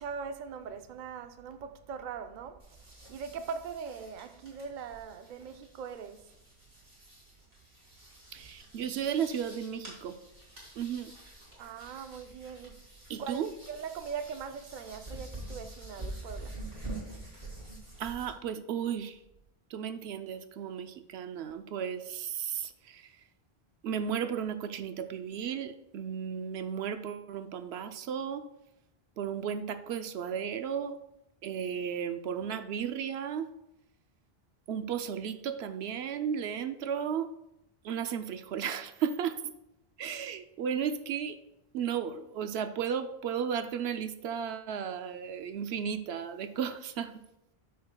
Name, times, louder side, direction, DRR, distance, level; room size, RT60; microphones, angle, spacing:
voice 1, 0.0-6.3 11.6-12.8 13.2-16.6, right 6 dB, 55° right, 0.6 m, -41 dB
sound 1, 2.6-18.3, right 2 dB, 40° right, 3.1 m, -47 dB
voice 2, 8.3-10.2 10.8-11.1 13.1-13.5 18.0-19.2 19.7-23.1 23.8-28.5 29.2-31.0 31.4-33.5 34.7-37.3 37.8-39.5 40.0-41.4 41.7-47.1, right 8 dB, 85° right, 0.9 m, -34 dB
13.0 x 5.6 x 2.2 m
omnidirectional pair, 1.1 m